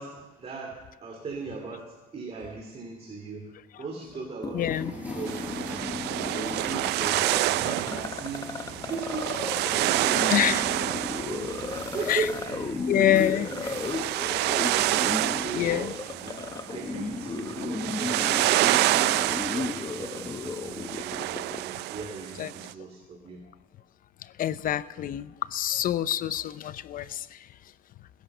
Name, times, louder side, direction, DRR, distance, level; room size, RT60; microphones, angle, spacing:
voice 1, 0.0-5.3 5.6-5.8 6.3-8.6 8.9-13.7 14.7-15.8 16.2-18.5 19.4-23.4, right 4 dB, 40° right, 1 dB, 2.6 m, -38 dB
sound 1, 4.4-21.6, left 4 dB, 20° left, 0.8 m, -35 dB
voice 2, 4.5-4.9 10.3-10.7 12.1-12.2 12.9-13.5 15.5-15.9 22.4-22.5 24.4-27.4, left 11 dB, 55° left, 16 dB, 0.6 m, -26 dB
sound 2, 4.6-15.8, right 1 dB, 10° right, 6.3 m, -46 dB
sound 3, 5.3-22.7, right 17 dB, 80° right, 0.4 m, -28 dB
20.5 x 10.5 x 6.7 m, 1.1 s
cardioid pair, 110°, 17 cm